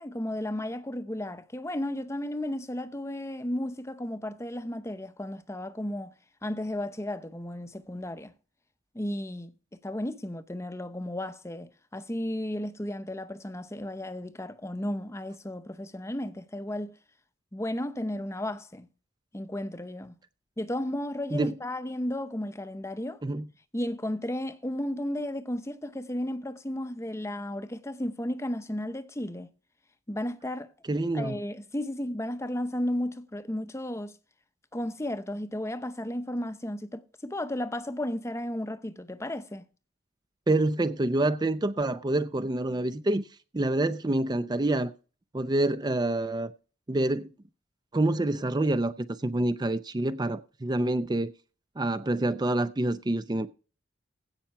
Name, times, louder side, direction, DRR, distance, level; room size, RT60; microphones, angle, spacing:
voice 1, 0.0-6.1 6.4-8.3 8.9-9.5 9.8-16.9 17.5-18.9 19.3-20.1 20.6-23.2 23.7-29.5 30.1-30.7 31.1-34.2 34.7-39.7, left 1 dB, 15° left, 0.7 m, -34 dB
voice 2, 30.9-31.4 40.5-43.2 43.5-44.9 45.3-46.5 46.9-47.3 47.9-51.3 51.8-53.5, right 2 dB, 20° right, 0.5 m, -27 dB
16.0 x 5.8 x 4.5 m
head